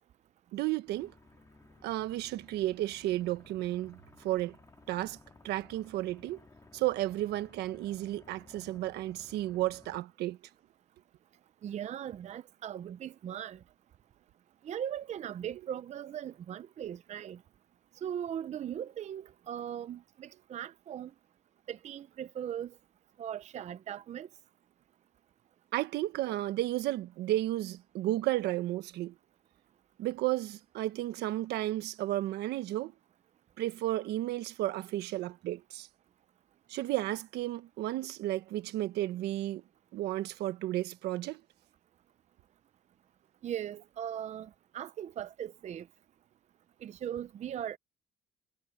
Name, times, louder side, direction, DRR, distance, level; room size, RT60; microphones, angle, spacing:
voice 1, 0.5-1.1 1.8-4.6 4.9-5.2 5.4-6.4 6.7-10.4 25.7-29.1 30.0-32.9 33.6-35.9 36.7-39.6 39.9-41.4, right 15 dB, 80° right, 1.2 m, -33 dB
sound 1, 0.9-10.0, left 3 dB, 20° left, 2.5 m, -58 dB
voice 2, 11.6-13.6 14.6-17.4 18.0-21.1 21.7-22.7 23.2-24.3 43.4-45.9 46.8-47.8, right 10 dB, 45° right, 0.6 m, -39 dB
cardioid pair, 110°, 17 cm